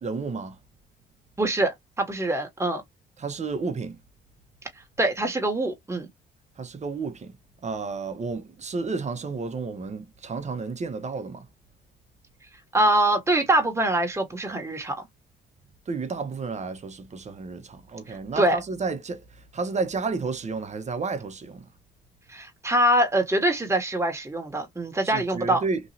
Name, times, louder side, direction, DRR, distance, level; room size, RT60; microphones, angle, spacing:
voice 1, 0.0-0.5 3.2-4.0 6.6-7.3 7.6-11.4 15.9-19.2 19.5-21.6 25.0-25.8, right 4 dB, 40° right, 0.9 m, -31 dB
voice 2, 1.4-2.8 5.0-6.1 12.7-15.0 18.4-18.6 22.3-25.6, right 1 dB, 15° right, 1.3 m, -24 dB
3.0 x 2.6 x 2.7 m
cardioid pair, 75°, 18 cm